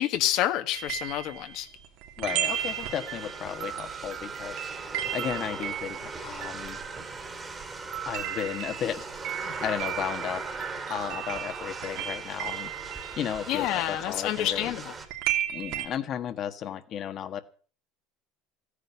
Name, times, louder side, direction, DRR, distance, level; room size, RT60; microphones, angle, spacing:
voice 1, 0.0-1.7 13.5-14.9, left 13 dB, 50° left, 1.3 m, -28 dB
sound 1, 0.7-7.4 7.6-15.9, right 11 dB, 60° right, 2.6 m, -36 dB
voice 2, 2.2-4.5 4.9-6.8 8.1-14.7 15.5-17.4, left 9 dB, 35° left, 1.3 m, -34 dB
sound 2, 2.3-15.1, right 4 dB, 15° right, 2.2 m, -39 dB
my music box, 3.1-7.4 7.9-11.9, right 12 dB, 45° right, 0.8 m, -40 dB
15.5 x 9.9 x 8.0 m
cardioid pair, 170°, 0 cm